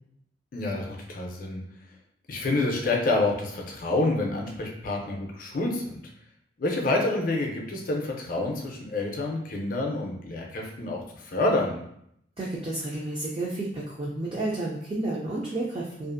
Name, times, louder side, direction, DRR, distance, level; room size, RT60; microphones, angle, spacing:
voice 1, 0.5-1.6 2.3-6.0 6.6-11.8, left 2 dB, 45° left, 0 dB, 0.5 m, -28 dB
voice 2, 12.4-16.1, right 2 dB, 30° right, -4 dB, 0.3 m, -31 dB
2.5 x 2.4 x 2.5 m, 0.73 s
head